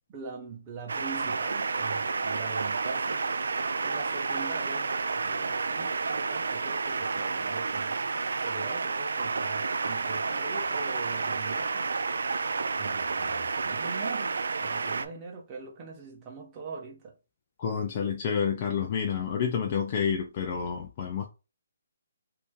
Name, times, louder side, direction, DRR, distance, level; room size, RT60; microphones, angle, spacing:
voice 1, 0.1-3.2 3.8-8.0 8.4-11.9 12.8-17.1, right 4 dB, 20° right, 1.0 m, -42 dB
sound 1, 0.9-15.1, right 4 dB, 75° right, 0.4 m, -30 dB
voice 2, 17.6-21.2, left 7 dB, 35° left, 0.5 m, -29 dB
2.8 x 2.5 x 3.6 m
hypercardioid pair, 155°, 0 cm